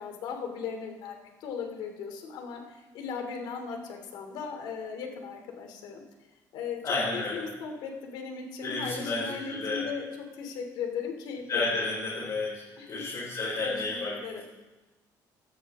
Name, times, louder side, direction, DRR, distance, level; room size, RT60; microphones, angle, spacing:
voice 1, 0.0-6.0 6.5-12.2 12.8-13.0 13.6-14.6, left 6 dB, 85° left, 3 dB, 2.9 m, -38 dB
voice 2, 6.8-7.4 8.6-9.9 11.5-12.6 12.9-14.2, left 3 dB, 45° left, -6 dB, 4.6 m, -31 dB
17.5 x 14.0 x 3.7 m, 1.1 s
cardioid pair, 120°, 8 cm